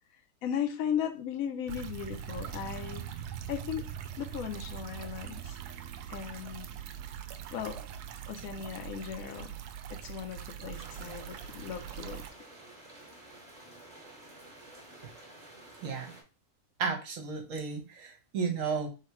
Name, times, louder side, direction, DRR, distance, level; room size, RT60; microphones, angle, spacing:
voice 1, 0.4-3.0 3.5-3.9 4.2-5.6 6.1-6.7 7.5-7.9 8.3-9.6 9.9-12.2, left 9 dB, 70° left, 6 dB, 1.1 m, -36 dB
sound 1, 1.7-12.3, right 9 dB, 90° right, 1.1 m, -42 dB
sound 2, 10.7-16.2, right 1 dB, 30° right, 1.2 m, -51 dB
voice 2, 15.8-16.1 16.8-18.9, right 5 dB, 60° right, 4 dB, 1.2 m, -33 dB
3.6 x 2.9 x 4.5 m, 0.31 s
omnidirectional pair, 1.6 m